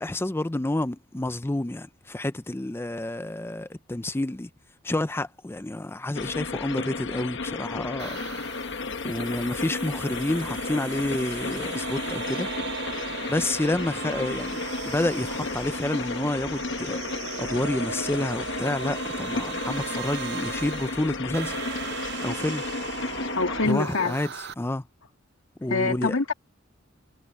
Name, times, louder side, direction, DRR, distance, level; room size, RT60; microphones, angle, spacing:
voice 1, 0.0-4.5 4.8-8.2 9.0-12.5 13.3-14.6 14.9-21.6 22.2-22.6 23.6-24.3 24.6-24.8 25.6-26.1, left 1 dB, 10° left, 0.5 m, -29 dB
sound 1, 6.1-23.7, left 4 dB, 65° left, 1.1 m, -33 dB
sound 2, 8.0-24.5, right 7 dB, 55° right, 0.7 m, -37 dB
voice 2, 23.4-24.2 25.7-26.3, left 3 dB, 85° left, 2.0 m, -25 dB
head